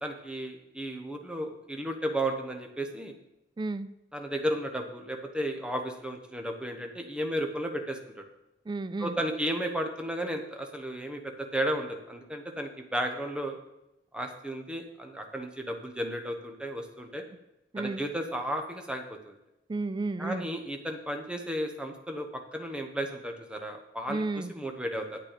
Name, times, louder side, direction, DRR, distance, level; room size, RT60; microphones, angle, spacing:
voice 1, 0.0-3.1 4.1-8.2 9.0-13.6 14.1-17.2 17.8-19.3 20.2-22.3 22.5-24.2 24.5-25.2, right 1 dB, 5° right, 4 dB, 1.0 m, -34 dB
voice 2, 3.6-3.9 8.7-9.2 17.7-18.0 19.7-20.5 24.1-24.5, right 3 dB, 25° right, 14 dB, 0.3 m, -32 dB
8.9 x 8.4 x 5.1 m, 0.90 s
head